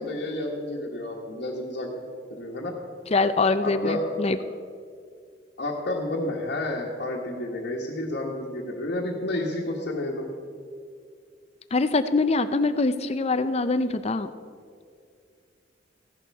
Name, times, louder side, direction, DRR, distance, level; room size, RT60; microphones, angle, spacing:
voice 1, 0.0-1.9 2.3-2.7 3.6-4.0 5.6-10.3, left 1 dB, 55° left, -4 dB, 1.4 m, -30 dB
voice 2, 3.1-4.4 11.7-14.3, left 3 dB, 35° left, 12 dB, 0.5 m, -24 dB
15.5 x 11.0 x 4.7 m, 2.2 s
head